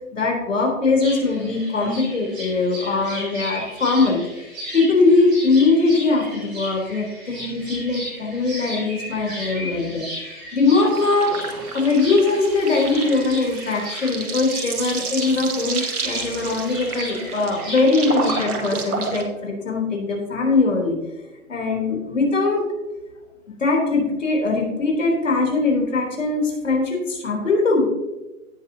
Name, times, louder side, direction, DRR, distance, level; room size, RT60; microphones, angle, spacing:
voice 1, 0.0-4.2 4.7-10.1 10.5-11.4 11.7-21.0 21.5-22.6 23.6-27.9, left 3 dB, 55° left, 1 dB, 3.7 m, -21 dB
sound 1, 1.0-18.4, equal, ahead, 0.8 m, -36 dB
sound 2, 10.8-19.2, right 4 dB, 80° right, 2.2 m, -31 dB
17.0 x 6.8 x 2.9 m, 1.1 s
hypercardioid pair, 175°, 44 cm